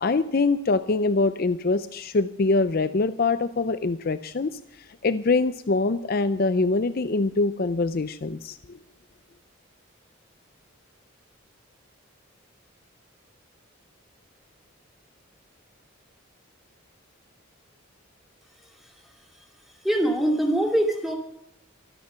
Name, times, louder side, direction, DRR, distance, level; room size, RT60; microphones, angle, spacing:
voice 1, 0.0-4.6 5.0-8.8, left 3 dB, 45° left, 12 dB, 0.5 m, -24 dB
voice 2, 19.8-21.1, right 1 dB, ahead, 1 dB, 2.5 m, -23 dB
25.0 x 9.7 x 5.7 m, 0.74 s
head